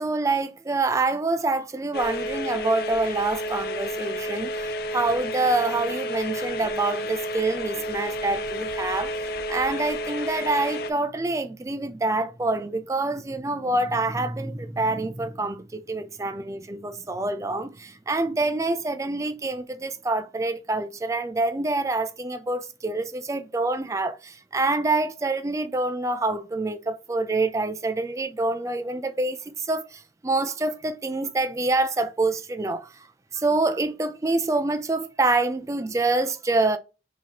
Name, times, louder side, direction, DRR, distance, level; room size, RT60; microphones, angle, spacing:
voice 1, 0.0-9.1 9.5-32.9 33.3-36.8, right 2 dB, 15° right, 0.3 m, -26 dB
sound 1, 1.9-10.9, equal, 55° left, 0.4 m, -31 dB
4.6 x 2.8 x 2.8 m
head